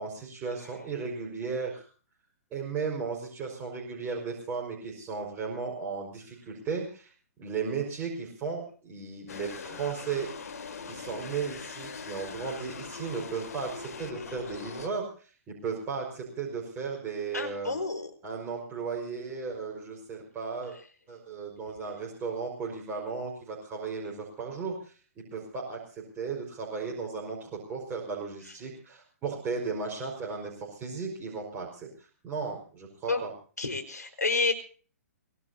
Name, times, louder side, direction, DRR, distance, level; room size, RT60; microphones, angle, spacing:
voice 1, 0.0-1.8 2.5-7.1 7.4-10.3 10.9-17.8 18.2-20.7 21.1-24.9 25.3-31.9 32.2-33.3, right 5 dB, 20° right, -1 dB, 5.2 m, -35 dB
sound 1, 9.3-14.9, left 5 dB, 65° left, 2.5 m, -41 dB
voice 2, 17.3-18.1 33.1-33.2 33.6-34.5, left 4 dB, 85° left, 6 dB, 4.5 m, -29 dB
23.5 x 18.5 x 2.8 m, 0.40 s
figure-of-eight pair, 125°, 9 cm